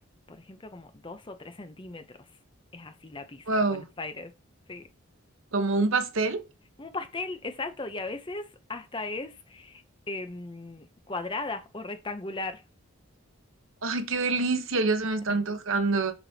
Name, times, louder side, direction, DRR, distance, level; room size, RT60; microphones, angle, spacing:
voice 1, 0.3-2.3 2.7-4.3 4.7-4.9 6.8-12.6, left 3 dB, 20° left, 0.6 m, -37 dB
voice 2, 3.5-3.8 5.5-6.4 13.8-16.1, right 3 dB, 65° right, 0.9 m, -26 dB
6.9 x 6.0 x 2.8 m
head